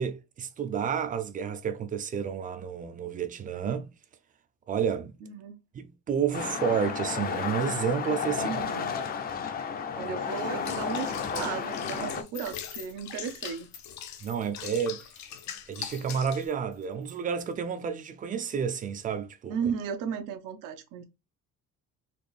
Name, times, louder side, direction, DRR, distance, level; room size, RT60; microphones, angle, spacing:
voice 1, 0.0-3.9 4.7-5.2 5.7-8.6 14.2-15.1 15.7-19.6, right 7 dB, 25° right, 0.4 m, -30 dB
voice 2, 5.2-5.6 8.3-9.0 9.9-13.7 19.5-21.0, right 7 dB, 85° right, 0.7 m, -35 dB
sound 1, 6.3-12.2, left 6 dB, 30° left, 0.5 m, -32 dB
Water / Bathtub (filling or washing), 10.6-16.5, left 9 dB, 60° left, 0.7 m, -41 dB
sound 2, 12.3-17.5, left 7 dB, 80° left, 1.8 m, -49 dB
4.1 x 2.6 x 3.2 m
cardioid pair, 170°, 31 cm